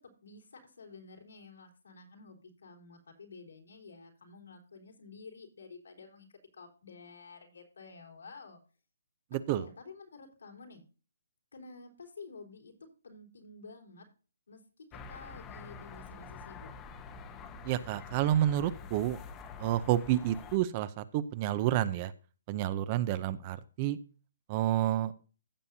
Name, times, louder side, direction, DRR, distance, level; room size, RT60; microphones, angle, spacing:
voice 1, 0.0-8.6 9.5-10.8 11.5-14.0 14.5-16.7, left 4 dB, 80° left, 3 dB, 4.0 m, -51 dB
voice 2, 9.3-9.6 17.6-19.2 19.6-22.1 22.5-24.0 24.5-25.1, right 12 dB, 30° right, 14 dB, 0.6 m, -29 dB
sound 1, 14.9-20.6, left 5 dB, 15° left, 0.9 m, -47 dB
15.5 x 7.1 x 2.7 m, 0.36 s
hypercardioid pair, 160°, 0 cm